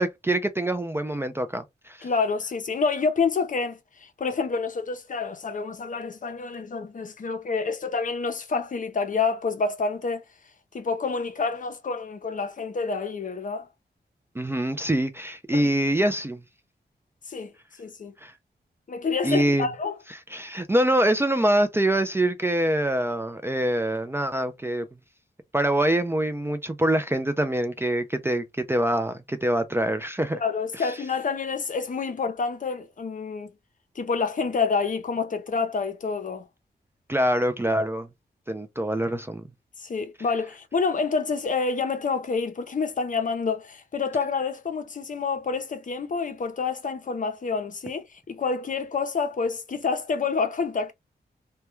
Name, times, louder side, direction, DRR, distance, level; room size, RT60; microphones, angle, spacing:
voice 1, 0.0-2.1 14.4-16.4 18.2-18.3 19.2-19.7 20.1-24.9 25.5-30.4 30.7-30.9 37.1-38.1 38.5-39.4, right 1 dB, 15° right, 0.3 m, -25 dB
voice 2, 2.0-10.2 10.7-13.7 15.5-15.7 17.3-17.5 17.8-18.1 18.9-19.9 30.3-33.5 34.0-36.5 39.8-50.9, left 4 dB, 50° left, 0.6 m, -28 dB
2.2 x 2.2 x 3.0 m
wide cardioid pair, 115°, 17 cm